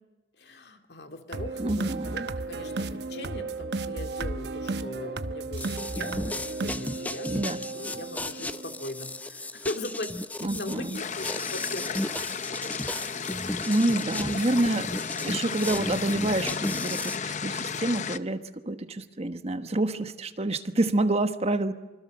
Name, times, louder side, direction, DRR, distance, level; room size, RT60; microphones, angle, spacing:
voice 1, 0.4-10.1 10.4-12.0 12.6-13.2 14.2-14.4, left 1 dB, 65° left, 5 dB, 2.4 m, -40 dB
sound 1, 1.3-9.3, right 3 dB, 65° right, 1.0 m, -34 dB
voice 2, 1.6-2.3 7.2-7.6 10.4-11.0 13.7-14.9 15.2-21.7, right 2 dB, 35° right, 9 dB, 1.2 m, -28 dB
sound 2, 5.6-17.2, left 1 dB, 10° left, 0.7 m, -35 dB
sound 3, 10.9-18.2, left 6 dB, 45° left, 0.7 m, -34 dB
25.5 x 25.0 x 6.7 m, 1.2 s
head